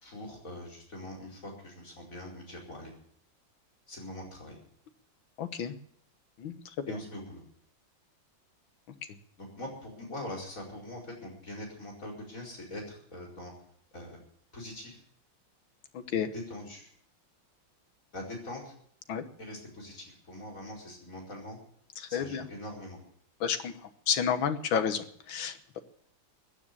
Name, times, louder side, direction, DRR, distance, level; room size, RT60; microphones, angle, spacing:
voice 1, 0.0-2.9 3.9-4.6 6.9-7.4 9.4-13.5 13.9-14.2 14.5-15.0 16.3-16.9 18.1-18.7 19.4-21.6 22.1-23.0, left 1 dB, 40° left, -2 dB, 5.3 m, -42 dB
voice 2, 5.4-5.8 6.4-7.0 15.9-16.3 19.1-19.2 22.0-22.5 23.4-25.8, left 7 dB, 85° left, 10 dB, 1.9 m, -31 dB
15.5 x 9.9 x 8.4 m, 0.66 s
omnidirectional pair, 2.1 m